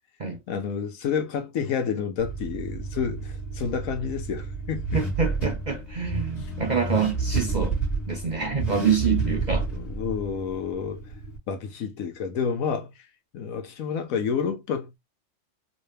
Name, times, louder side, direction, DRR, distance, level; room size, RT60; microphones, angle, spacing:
voice 1, 0.5-5.0 9.7-11.0 11.5-12.9 13.3-15.0, left 6 dB, 85° left, 1.2 m, -29 dB
Car / Accelerating revving vroom, 2.2-11.4, right 3 dB, 45° left, 1.8 m, -30 dB
voice 2, 4.9-7.8 8.1-9.7, right 6 dB, 50° right, 0.5 m, -26 dB
3.2 x 2.8 x 3.2 m
omnidirectional pair, 1.4 m